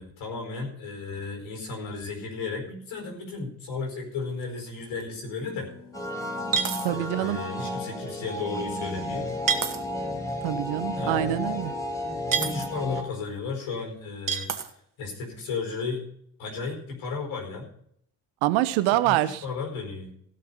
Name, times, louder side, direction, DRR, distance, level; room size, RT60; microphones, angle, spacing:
voice 1, 0.0-5.7 6.9-9.3 10.9-11.3 12.0-14.5 15.0-16.0 16.4-17.7 19.0-20.2, left 4 dB, 70° left, 1 dB, 4.9 m, -34 dB
sound 1, 4.4-4.5 5.0-5.1 6.5-6.9 9.5-9.8 12.3-12.7 14.3-14.7, right 6 dB, 40° right, 1.8 m, -27 dB
sound 2, 5.5-11.8, left 1 dB, 85° left, 2.4 m, -50 dB
sound 3, 5.9-13.0, left 1 dB, 5° left, 4.5 m, -33 dB
voice 2, 6.8-7.4 10.4-11.7 18.4-19.4, right 14 dB, 70° right, 14 dB, 1.0 m, -25 dB
17.0 x 6.7 x 5.5 m, 0.67 s
hypercardioid pair, 40°, 49 cm